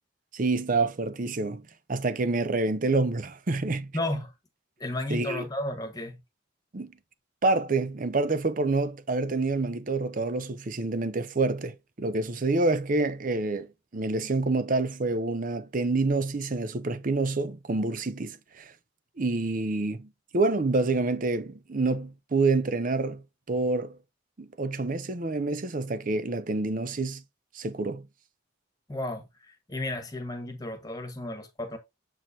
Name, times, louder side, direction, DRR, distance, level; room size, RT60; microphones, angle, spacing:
voice 1, 0.3-3.9 5.1-5.4 6.7-6.9 7.4-18.7 19.2-23.2 23.5-24.0 24.4-27.2 27.5-28.0, right 3 dB, 40° right, 0.6 m, -27 dB
voice 2, 3.9-4.3 4.8-6.2 28.9-31.8, left 1 dB, 20° left, 1.3 m, -33 dB
7.5 x 4.8 x 2.7 m
head